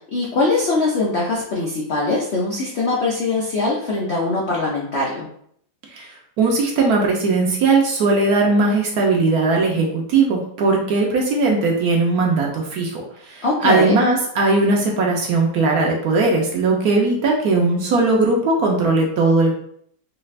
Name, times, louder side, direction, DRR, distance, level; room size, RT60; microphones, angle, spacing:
voice 1, 0.1-5.3 13.4-14.0, left 3 dB, 75° left, -4 dB, 0.6 m, -22 dB
voice 2, 6.4-13.0 13.3-19.5, right 3 dB, 65° right, 0 dB, 1.0 m, -18 dB
4.0 x 2.4 x 3.2 m, 0.66 s
omnidirectional pair, 2.0 m